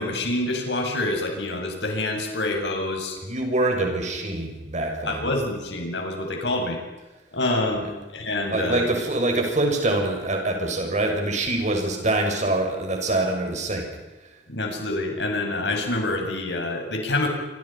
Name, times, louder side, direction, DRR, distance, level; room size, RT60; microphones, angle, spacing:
voice 1, 0.0-3.2 5.0-6.8 7.3-8.9 14.5-17.3, left 2 dB, 70° left, 3 dB, 7.2 m, -27 dB
voice 2, 3.2-5.3 8.5-13.9, right 2 dB, 40° right, 3 dB, 6.8 m, -24 dB
28.0 x 25.5 x 5.9 m, 1.1 s
head